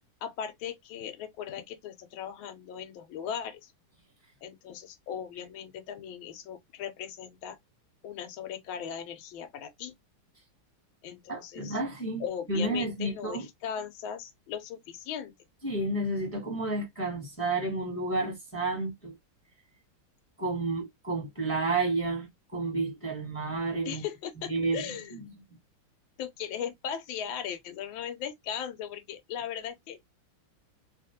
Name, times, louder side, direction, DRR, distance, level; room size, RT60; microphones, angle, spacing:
voice 1, 0.2-3.7 4.4-7.6 8.0-9.9 11.0-11.8 12.2-15.3 23.8-25.2 26.2-30.0, left 8 dB, 75° left, 1.5 m, -38 dB
voice 2, 11.3-13.5 15.6-19.2 20.4-24.0 24.5-25.2, right 2 dB, 10° left, 0.8 m, -31 dB
3.3 x 2.5 x 2.7 m
omnidirectional pair, 2.3 m